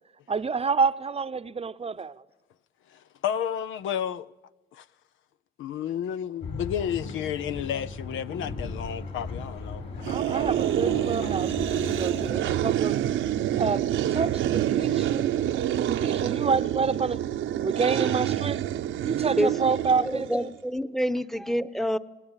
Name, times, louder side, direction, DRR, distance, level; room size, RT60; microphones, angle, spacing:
voice 1, 0.3-2.2 10.1-13.0 13.5-15.3 15.9-17.2 17.6-18.6 19.0-20.5, right 5 dB, 30° right, 0.8 m, -28 dB
voice 2, 2.9-4.3 4.7-4.8 5.6-9.8, left 9 dB, 80° left, 0.8 m, -31 dB
sound 1, 6.4-12.7, left 3 dB, 65° left, 7.3 m, -37 dB
sound 2, 10.0-20.5, right 11 dB, 80° right, 1.0 m, -27 dB
voice 3, 20.0-22.0, equal, ahead, 1.0 m, -27 dB
28.5 x 20.0 x 9.1 m
cardioid pair, 90°, 20 cm